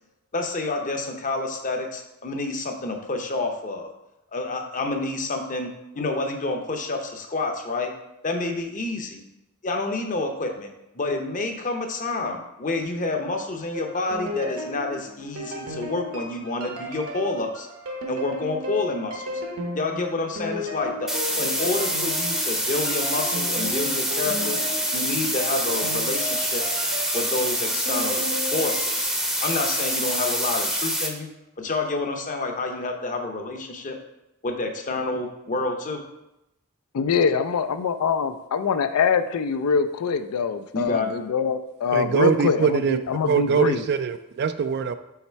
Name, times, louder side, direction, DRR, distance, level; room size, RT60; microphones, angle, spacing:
voice 1, 0.3-3.9 4.3-5.7 6.0-7.9 8.2-9.2 9.6-10.7 10.9-17.7 18.1-19.4 19.7-24.6 24.9-26.6 27.1-29.1 29.4-31.3 31.6-34.0 34.4-36.0 40.7-41.1, left 2 dB, 35° left, 4 dB, 0.7 m, -28 dB
sound 1, 13.7-29.0, left 1 dB, 70° right, 1.1 m, -35 dB
sound 2, 21.1-31.1, equal, ahead, 0.6 m, -26 dB
voice 2, 36.9-43.8, left 6 dB, 75° left, 11 dB, 0.4 m, -24 dB
voice 3, 41.9-43.0 43.3-44.9, right 6 dB, 50° right, 11 dB, 0.3 m, -23 dB
5.7 x 4.2 x 4.5 m, 0.91 s
head